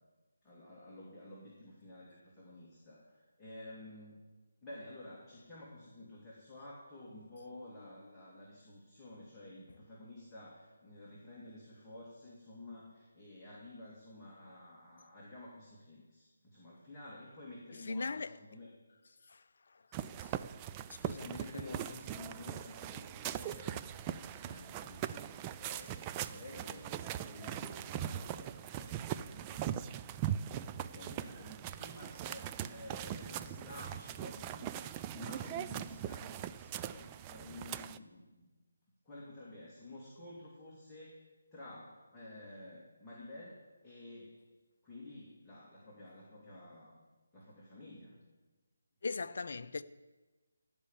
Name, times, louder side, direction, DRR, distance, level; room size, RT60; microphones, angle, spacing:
voice 1, 0.4-4.2 4.6-18.7 21.2-38.5 39.0-41.2 41.5-44.4 44.8-47.0 47.3-48.2, left 1 dB, 10° left, 2.2 m, -51 dB
voice 2, 17.9-18.4 19.3-19.4 19.7-19.8 20.2-20.4 20.9-21.8 49.0-49.8, left 4 dB, 55° left, 0.6 m, -40 dB
sound 1, 19.9-38.0, right 11 dB, 20° right, 0.3 m, -41 dB
16.0 x 5.4 x 8.5 m
figure-of-eight pair, 155°, 0 cm